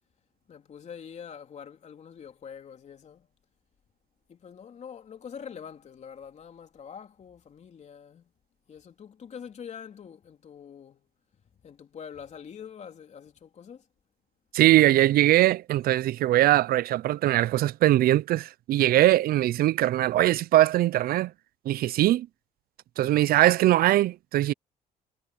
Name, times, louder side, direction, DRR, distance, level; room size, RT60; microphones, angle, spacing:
voice 1, 0.5-3.3 4.3-8.2 8.7-11.1 11.6-13.8, left 7 dB, 40° left, 3.2 m, -44 dB
voice 2, 14.5-21.3 21.7-22.3 23.0-24.5, right 14 dB, 60° right, 0.5 m, -21 dB
cardioid pair, 110°, 17 cm